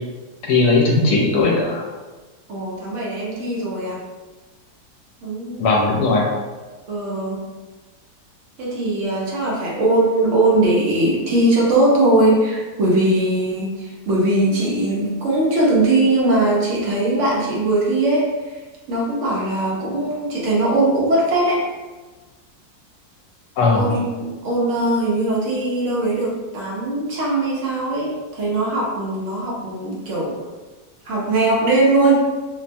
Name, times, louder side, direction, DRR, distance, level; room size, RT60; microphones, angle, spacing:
voice 1, 0.4-1.9 5.6-6.3 23.6-23.9, left 3 dB, 80° left, -2 dB, 1.1 m, -17 dB
voice 2, 2.5-4.0 5.2-5.7 6.9-7.5 8.6-18.6 18.9-21.7 23.7-30.4 31.0-32.1, right 2 dB, 60° right, -4 dB, 0.9 m, -20 dB
2.9 x 2.1 x 2.5 m, 1.3 s
omnidirectional pair, 1.7 m